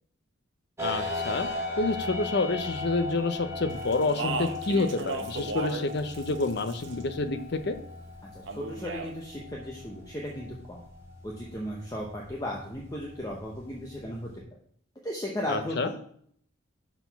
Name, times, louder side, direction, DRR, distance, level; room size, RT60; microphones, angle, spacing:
voice 1, 0.8-1.5 1.8-7.8 15.5-15.9, left 3 dB, 55° left, 9 dB, 0.6 m, -28 dB
sound 1, 0.8-14.4, left 2 dB, 15° right, 1.3 m, -38 dB
Speech, 3.9-5.9 6.1-7.0 8.5-9.1, right 3 dB, 65° right, 0.8 m, -35 dB
voice 2, 8.3-10.8 11.2-14.4 15.0-15.9, left 1 dB, 15° left, -2 dB, 0.8 m, -36 dB
6.0 x 4.6 x 5.7 m, 0.62 s
head